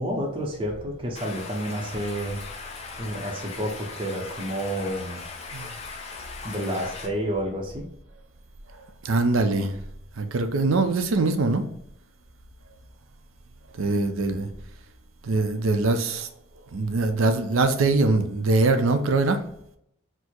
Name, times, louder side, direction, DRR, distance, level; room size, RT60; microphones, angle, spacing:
voice 1, 0.0-2.4 3.0-5.2 6.4-7.9, equal, 25° right, 0.6 m, -30 dB
Stream, 1.2-7.1, left 4 dB, 30° left, 0.6 m, -39 dB
voice 2, 9.0-9.7 10.2-11.6 13.8-14.5 15.2-16.3 16.7-19.4, right 3 dB, 75° right, 0.5 m, -22 dB
4.4 x 2.0 x 4.4 m
head